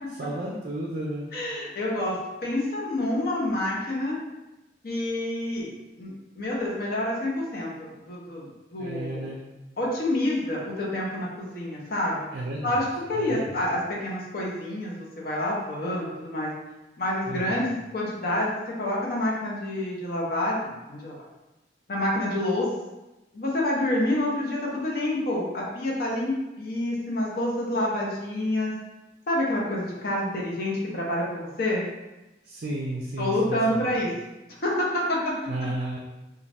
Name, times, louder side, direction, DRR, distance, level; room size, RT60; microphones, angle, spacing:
voice 1, 0.1-1.2 8.8-9.4 12.3-13.6 17.3-17.6 32.4-33.9 35.5-36.0, right 1 dB, 55° right, -3 dB, 0.4 m, -33 dB
voice 2, 1.3-4.2 4.8-9.2 9.8-12.3 12.6-16.5 17.0-21.1 21.9-22.7 23.3-28.7 29.3-31.8 33.2-34.1 34.6-35.5, left 1 dB, 55° left, -4 dB, 0.6 m, -28 dB
2.5 x 2.3 x 3.2 m, 1.0 s
head